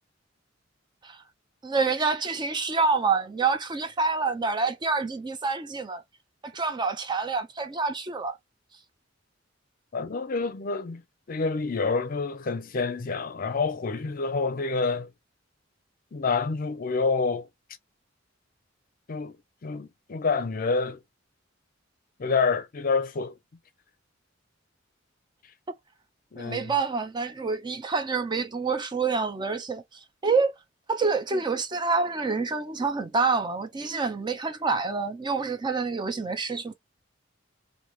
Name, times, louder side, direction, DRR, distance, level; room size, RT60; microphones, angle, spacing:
voice 1, 1.6-6.0 6.4-8.4 26.4-30.5 30.9-36.7, right 4 dB, 25° right, 0.5 m, -27 dB
voice 2, 9.9-11.0 11.3-15.1 16.1-17.5 19.1-19.4 19.6-21.0 22.2-23.3 26.3-26.7, left 4 dB, 45° left, 0.5 m, -27 dB
2.8 x 2.6 x 3.0 m
head